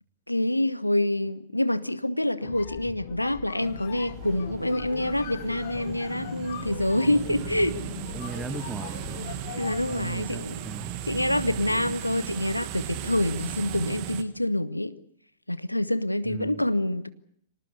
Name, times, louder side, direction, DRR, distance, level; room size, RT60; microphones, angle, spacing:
voice 1, 0.3-7.8 9.6-10.6 11.1-15.0 15.5-17.1, left 1 dB, 90° left, 1.1 m, -26 dB
sound 1, 2.3-10.1, left 12 dB, 50° left, 1.1 m, -40 dB
sound 2, 3.6-14.2, right 11 dB, 40° right, 2.1 m, -37 dB
voice 2, 8.1-9.2 9.9-11.0 16.3-16.6, right 3 dB, 10° right, 1.3 m, -38 dB
26.0 x 18.5 x 8.2 m
figure-of-eight pair, 100°, 0 cm